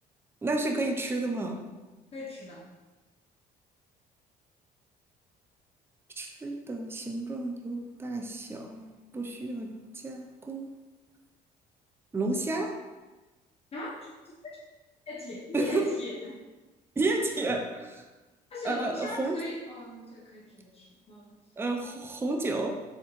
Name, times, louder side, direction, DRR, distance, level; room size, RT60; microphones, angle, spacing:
voice 1, 0.4-1.7 6.2-8.8 9.1-9.7 10.0-10.7 12.1-12.7 15.5-15.9 17.0-18.0 18.6-19.4 21.6-22.7, right 2 dB, 15° right, 3 dB, 0.5 m, -31 dB
voice 2, 2.1-2.6 13.7-14.1 14.4-14.6 15.1-16.4 18.5-21.4, left 2 dB, 35° left, -4 dB, 0.8 m, -39 dB
4.3 x 3.5 x 3.1 m, 1.2 s
cardioid pair, 110°, 17 cm